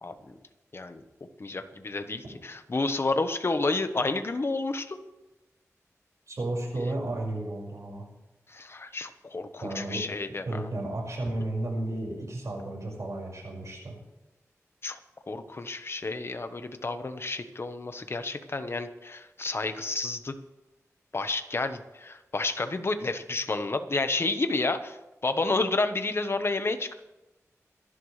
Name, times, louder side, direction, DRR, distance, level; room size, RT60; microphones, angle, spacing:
voice 1, 1.4-5.0 8.5-10.7 14.8-15.0 15.3-20.3 21.1-25.0 25.2-26.9, left 3 dB, 50° left, 8 dB, 1.2 m, -30 dB
voice 2, 6.3-8.1 9.6-10.2 10.5-13.9, right 1 dB, 70° right, -1 dB, 5.5 m, -33 dB
26.0 x 11.5 x 3.3 m, 1.0 s
wide cardioid pair, 100°, 5 cm